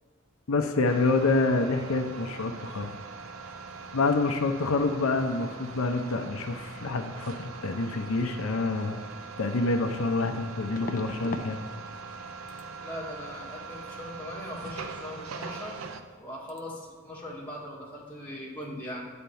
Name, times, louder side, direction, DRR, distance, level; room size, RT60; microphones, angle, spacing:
voice 1, 0.5-2.9 3.9-9.0 9.4-11.6, left 3 dB, 90° left, 5 dB, 0.6 m, -27 dB
sound 1, 0.9-16.0, right 4 dB, 85° right, 0.6 m, -42 dB
sound 2, 9.2-9.3 10.7-11.5 11.8-12.2 12.5-12.7 15.6-15.7 16.0-16.2 16.5-16.6, left 2 dB, 40° left, 0.6 m, -39 dB
voice 2, 12.8-15.9 16.2-19.1, left 1 dB, 10° left, -6 dB, 1.8 m, -40 dB
9.1 x 4.3 x 7.0 m, 1.4 s
head